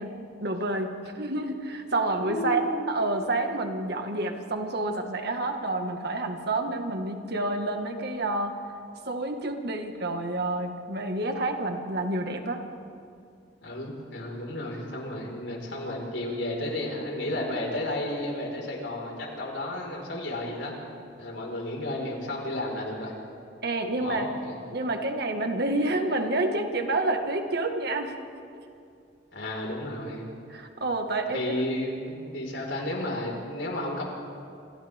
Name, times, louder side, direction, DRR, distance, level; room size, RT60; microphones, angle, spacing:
voice 1, 0.0-8.6 9.1-12.6 23.6-24.3 24.7-28.1 30.5-31.6, right 2 dB, 60° right, 4 dB, 1.9 m, -29 dB
voice 2, 2.3-2.8 13.6-20.7 21.2-23.1 23.9-24.6 29.3-30.3 31.3-34.0, left 1 dB, 80° left, -1 dB, 5.1 m, -32 dB
28.0 x 27.5 x 3.7 m, 2.4 s
head